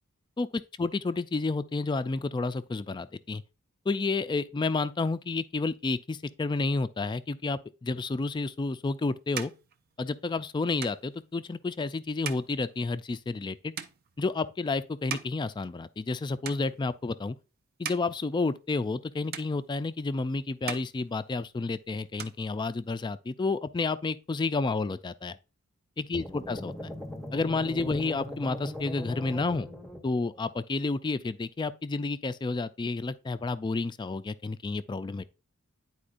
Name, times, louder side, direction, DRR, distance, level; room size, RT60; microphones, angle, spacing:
voice 1, 0.4-3.4 3.9-9.5 10.0-13.7 14.2-17.4 17.8-25.4 26.0-26.7 27.3-29.7 30.0-35.2, left 3 dB, 20° left, 0.3 m, -30 dB
sound 1, 8.5-16.2 16.4-17.1 17.6-19.0 19.3-20.2 20.5-21.7 22.0-23.1, right 7 dB, 45° right, 0.5 m, -42 dB
sound 2, 26.1-30.4, left 1 dB, ahead, 0.7 m, -39 dB
10.0 x 4.3 x 2.5 m
head